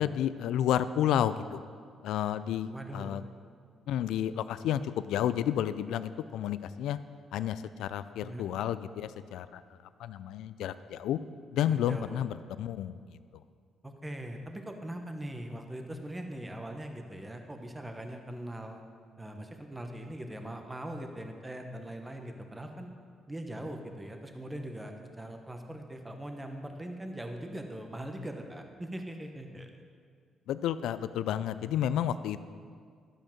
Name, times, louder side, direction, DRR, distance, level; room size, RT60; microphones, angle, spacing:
voice 1, 0.0-1.6 2.0-3.2 3.9-7.0 7.3-9.6 10.0-11.2 11.5-13.0 30.5-32.4, left 10 dB, 85° left, 14 dB, 0.3 m, -31 dB
voice 2, 2.7-3.3 8.2-8.4 11.7-12.2 13.8-18.8 19.2-22.9 23.3-29.8, right 1 dB, 15° right, 4 dB, 1.0 m, -41 dB
12.0 x 5.2 x 7.2 m, 2.1 s
cardioid pair, 90°, 0 cm